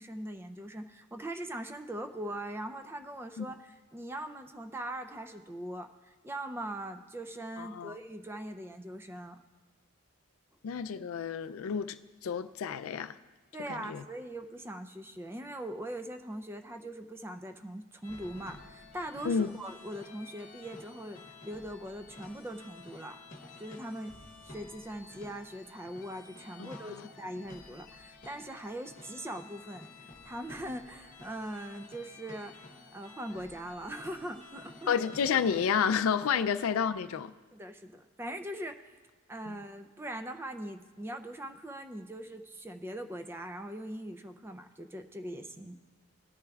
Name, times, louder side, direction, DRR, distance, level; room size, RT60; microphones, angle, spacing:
voice 1, 0.0-9.4 13.5-23.2 23.6-24.1 24.4-32.6 32.9-35.0 36.3-36.4 37.5-38.8 39.3-45.8, right 1 dB, 10° right, 0.4 m, -41 dB
voice 2, 7.6-8.0 10.6-12.0 12.2-13.2 13.7-14.0 19.2-19.5 26.6-27.1 34.9-37.3 39.5-39.6, left 7 dB, 85° left, 0.4 m, -30 dB
sound 1, 18.0-35.8, left 3 dB, 40° left, 1.2 m, -52 dB
18.0 x 10.0 x 2.3 m
head